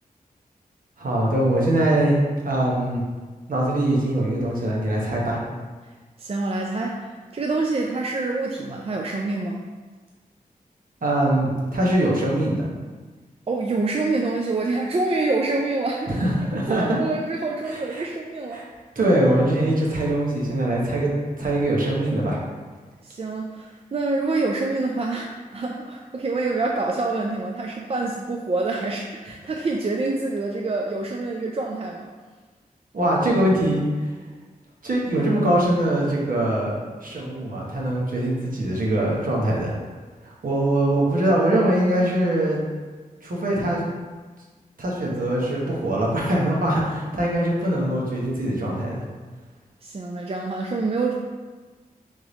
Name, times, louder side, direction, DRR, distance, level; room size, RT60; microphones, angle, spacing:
voice 1, 1.0-2.2 2.4-3.0 3.5-5.4 11.0-12.6 16.1-17.0 17.7-18.0 18.5-18.7 18.9-21.1 21.4-22.4 32.9-34.1 34.8-39.7 40.2-42.6 43.2-43.8 44.8-49.0, right 1 dB, 65° right, -4 dB, 1.2 m, -22 dB
voice 2, 6.2-9.6 13.5-16.1 16.7-18.6 23.0-32.1 49.8-51.1, right 3 dB, 40° right, 0 dB, 0.4 m, -26 dB
3.6 x 3.2 x 4.0 m, 1.4 s
cardioid pair, 50°, 15 cm